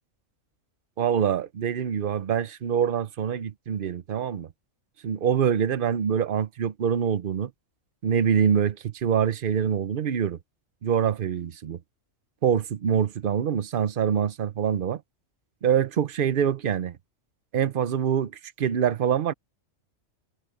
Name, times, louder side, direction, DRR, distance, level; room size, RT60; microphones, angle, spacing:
voice 1, 1.0-4.5 5.0-7.5 8.0-10.4 10.8-11.8 12.4-15.0 15.6-17.0 17.5-18.3 18.6-19.3, right 8 dB, 50° right, 0.8 m, -25 dB
omnidirectional pair, 1.4 m